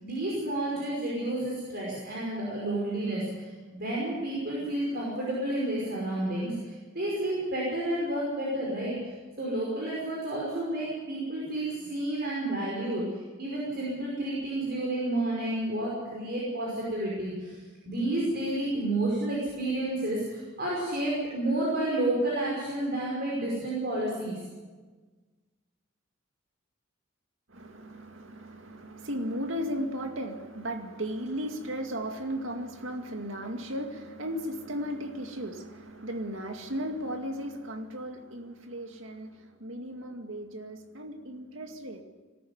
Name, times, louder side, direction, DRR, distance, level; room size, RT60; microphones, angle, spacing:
voice 1, 0.0-9.1 9.4-17.6 17.8-24.4, right 1 dB, 55° right, -4 dB, 5.5 m, -30 dB
voice 2, 27.5-42.0, equal, 85° right, 5 dB, 2.2 m, -36 dB
20.0 x 13.5 x 9.6 m, 1.3 s
head